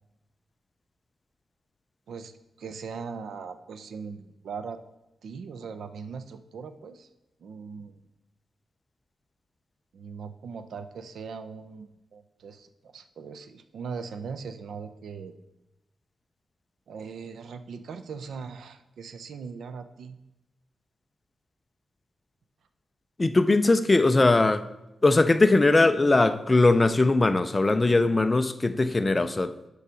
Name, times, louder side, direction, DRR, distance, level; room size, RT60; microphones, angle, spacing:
voice 1, 2.6-4.8 5.2-7.1 7.4-8.0 9.9-15.3 16.9-20.2, right 5 dB, 70° right, 0.5 m, -40 dB
voice 2, 23.2-24.7 25.0-29.5, left 2 dB, 20° left, 0.4 m, -20 dB
6.8 x 4.8 x 5.0 m
wide cardioid pair, 155°, 0 cm